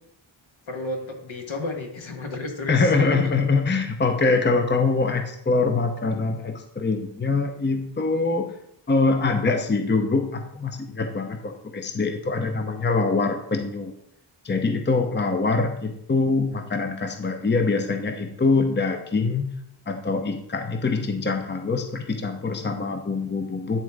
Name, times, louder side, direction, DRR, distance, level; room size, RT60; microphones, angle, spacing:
voice 1, 0.7-3.2, left 2 dB, 70° left, 2 dB, 1.5 m, -32 dB
voice 2, 2.7-8.5 8.9-13.9 14.4-19.5 19.9-23.8, left 3 dB, 20° left, 6 dB, 0.7 m, -24 dB
9.9 x 3.5 x 4.8 m, 0.75 s
wide cardioid pair, 75°, 49 cm